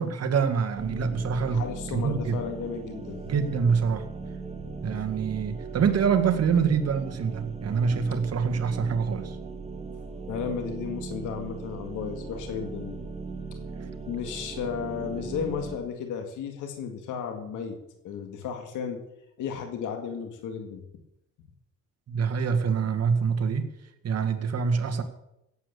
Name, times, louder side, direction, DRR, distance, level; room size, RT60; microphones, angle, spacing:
voice 1, 0.0-1.6 1.9-2.4 3.3-4.1 4.8-9.4 22.1-23.7 24.0-25.0, right 6 dB, 55° right, 7 dB, 1.9 m, -25 dB
sound 1, 0.8-15.8, right 4 dB, 20° right, 2.1 m, -38 dB
voice 2, 1.4-3.2 10.3-13.0 14.1-17.8 18.0-19.0 19.4-20.8, left 7 dB, 85° left, 5 dB, 2.1 m, -34 dB
17.0 x 8.5 x 6.9 m, 0.86 s
cardioid pair, 90°, 30 cm